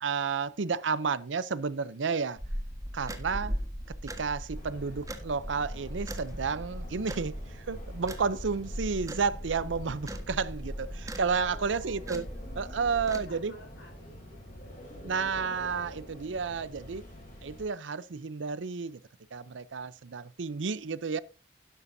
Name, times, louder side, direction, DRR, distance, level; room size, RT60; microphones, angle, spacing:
voice 1, 0.0-2.4 2.9-3.5 3.9-12.3 12.6-13.5 15.0-17.0 17.4-19.0 19.3-21.2, right 5 dB, 85° right, 0.6 m, -31 dB
sound 1, 2.4-13.3, equal, 20° right, 1.4 m, -39 dB
sound 2, 4.5-17.6, equal, 45° left, 7.0 m, -48 dB
voice 2, 11.3-12.3 12.8-15.0, left 2 dB, 75° left, 7.3 m, -53 dB
12.5 x 11.0 x 2.7 m
head